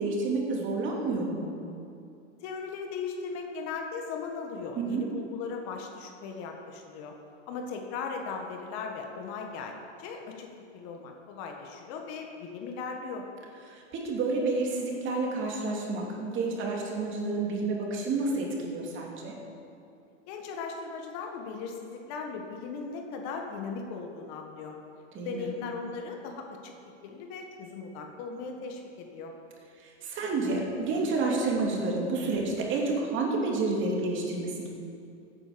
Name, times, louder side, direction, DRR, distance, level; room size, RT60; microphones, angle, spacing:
voice 1, 0.0-1.5 4.9-5.1 13.7-19.3 25.1-25.5 29.8-34.7, right 3 dB, 35° right, -1 dB, 2.7 m, -29 dB
voice 2, 2.4-7.1 7.5-13.3 20.3-24.8 25.2-29.3, left 5 dB, 45° left, 3 dB, 1.6 m, -38 dB
14.0 x 9.4 x 5.3 m, 2.5 s
hypercardioid pair, 120°, 35 cm